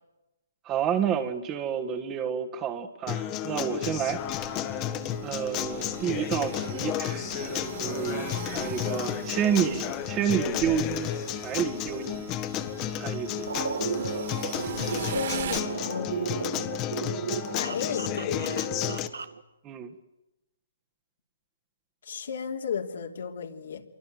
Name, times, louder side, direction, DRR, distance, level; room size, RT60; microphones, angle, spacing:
voice 1, 0.7-4.7 5.2-11.1 11.4-12.2 13.0-13.5 19.6-19.9, right 8 dB, 20° right, 7 dB, 1.8 m, -30 dB
Acoustic guitar, 3.1-19.1, left 11 dB, 25° left, 1.7 m, -32 dB
sound 1, 3.8-15.6, right 8 dB, 55° right, 3.7 m, -41 dB
sound 2, 13.5-19.4, right 6 dB, 85° right, 1.7 m, -34 dB
voice 2, 15.0-16.6 17.5-18.6 22.1-23.8, left 7 dB, 65° left, 3 dB, 3.2 m, -34 dB
26.5 x 24.0 x 7.8 m, 0.96 s
hypercardioid pair, 150°, 0 cm